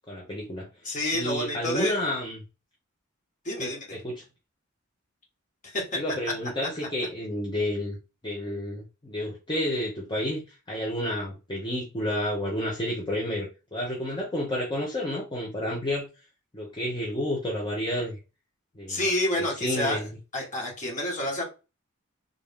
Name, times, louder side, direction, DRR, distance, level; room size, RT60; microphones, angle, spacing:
voice 1, 0.1-2.4 3.6-4.2 5.9-8.0 8.2-16.1 16.5-18.2 18.7-19.0 19.4-20.1, left 1 dB, 20° left, -3 dB, 0.8 m, -30 dB
voice 2, 0.8-2.0 3.4-4.0 5.6-6.0 18.9-20.1 20.3-21.4, left 1 dB, 40° left, -2 dB, 1.7 m, -29 dB
3.6 x 2.8 x 3.6 m, 0.29 s
head